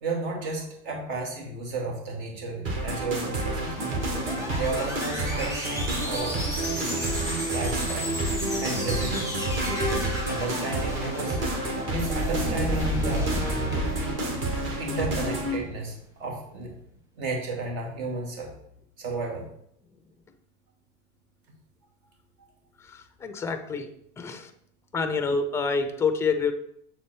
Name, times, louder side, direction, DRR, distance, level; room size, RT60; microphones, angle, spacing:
voice 1, 0.0-3.8 4.5-6.4 6.7-8.1 8.6-9.5 10.3-11.4 11.9-13.3 14.5-16.7 17.2-18.5 19.0-19.5 22.4-22.5, right 2 dB, 60° right, 0 dB, 2.5 m, -33 dB
sound 1, 2.6-15.6, right 1 dB, 35° right, 1.9 m, -29 dB
sound 2, 3.5-15.6, equal, 10° right, 1.3 m, -33 dB
voice 2, 23.2-23.9 24.2-24.5 24.9-26.5, left 4 dB, 10° left, 8 dB, 0.4 m, -27 dB
7.3 x 4.4 x 4.4 m, 0.70 s
supercardioid pair, 140°, 36 cm